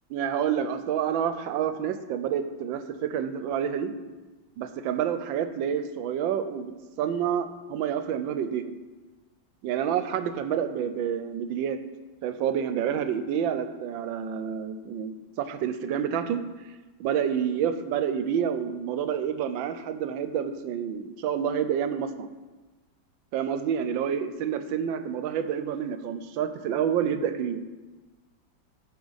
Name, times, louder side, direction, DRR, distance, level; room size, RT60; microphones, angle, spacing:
voice 1, 0.1-3.9 4.6-6.7 7.0-8.8 9.6-11.8 12.2-16.4 17.0-22.3 23.3-27.6, right 8 dB, 80° right, 10 dB, 1.4 m, -28 dB
14.5 x 5.2 x 4.0 m, 1.2 s
omnidirectional pair, 2.1 m